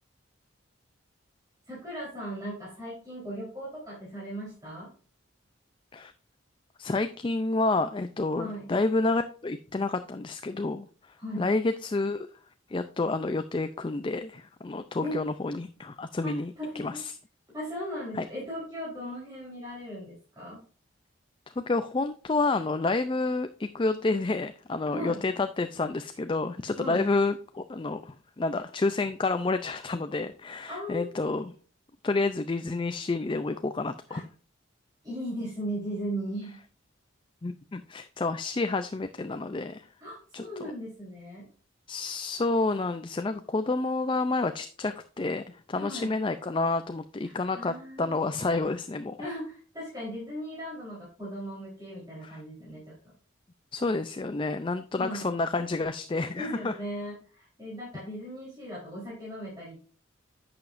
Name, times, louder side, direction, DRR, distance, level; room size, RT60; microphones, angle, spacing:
voice 1, 1.7-4.9 8.4-8.7 11.2-11.5 15.0-15.2 16.2-17.0 17.5-20.6 24.9-25.2 26.8-27.1 30.7-31.2 34.1-34.2 35.0-36.6 40.0-41.5 45.7-46.1 47.2-48.3 49.2-52.9 55.0-55.3 56.4-59.7, equal, 20° right, -7 dB, 3.8 m, -37 dB
voice 2, 6.8-10.9 11.4-12.3 12.7-17.1 18.1-18.3 21.6-31.5 32.0-34.3 37.4-39.9 40.3-40.7 41.9-45.4 45.7-49.3 52.2-52.4 53.7-56.7, left 3 dB, 25° left, 9 dB, 0.4 m, -29 dB
10.5 x 6.9 x 2.5 m, 0.42 s
head